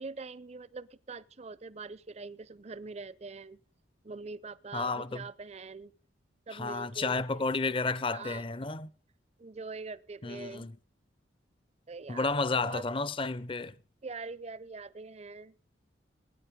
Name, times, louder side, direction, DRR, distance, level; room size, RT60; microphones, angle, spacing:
voice 1, 0.0-3.6 4.0-5.9 6.5-7.4 8.1-8.4 9.4-10.7 11.9-12.8 14.0-15.5, right 4 dB, 35° right, 0.6 m, -43 dB
voice 2, 4.7-5.2 6.5-8.9 10.2-10.7 12.1-13.7, left 3 dB, 30° left, 0.6 m, -31 dB
20.5 x 9.9 x 5.1 m
head